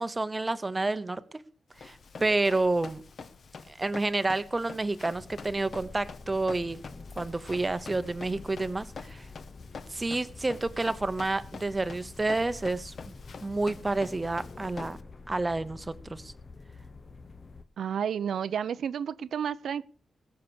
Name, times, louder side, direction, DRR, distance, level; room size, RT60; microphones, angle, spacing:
voice 1, 0.0-1.4 1.8-3.0 3.7-6.8 7.2-9.3 9.9-12.9 13.4-15.0 15.3-16.3, right 2 dB, 20° right, 0.9 m, -29 dB
Run, 1.7-15.0, left 5 dB, 55° left, 1.2 m, -47 dB
sound 1, 5.1-17.6, left 3 dB, 35° left, 0.9 m, -47 dB
voice 2, 17.8-19.8, right 8 dB, 80° right, 0.7 m, -31 dB
19.5 x 6.7 x 7.0 m
wide cardioid pair, 125°, 0 cm